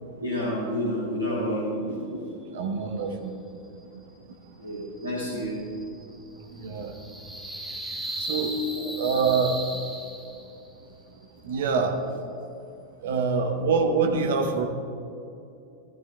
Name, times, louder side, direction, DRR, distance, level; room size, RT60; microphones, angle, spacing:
voice 1, 0.2-2.2 4.6-5.5 8.7-8.8, equal, 85° right, -8 dB, 2.7 m, -29 dB
voice 2, 2.5-3.3 6.5-6.9 8.2-8.5 9.0-9.6 11.4-12.0 13.0-14.6, right 5 dB, 60° right, 4 dB, 1.1 m, -25 dB
sound 1, 4.7-10.7, right 1 dB, 5° right, 1.2 m, -37 dB
14.5 x 13.0 x 2.3 m, 2.7 s
figure-of-eight pair, 90°, 0 cm